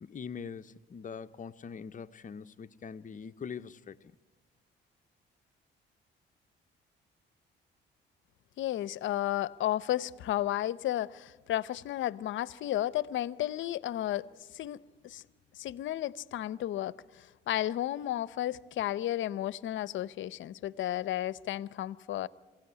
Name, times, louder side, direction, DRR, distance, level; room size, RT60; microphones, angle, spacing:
voice 1, 0.0-4.1, left 6 dB, 40° left, 0.8 m, -43 dB
voice 2, 8.6-14.3 14.5-15.2 15.5-22.3, left 13 dB, 75° left, 0.7 m, -33 dB
27.0 x 17.0 x 9.8 m
cardioid pair, 90°, 20 cm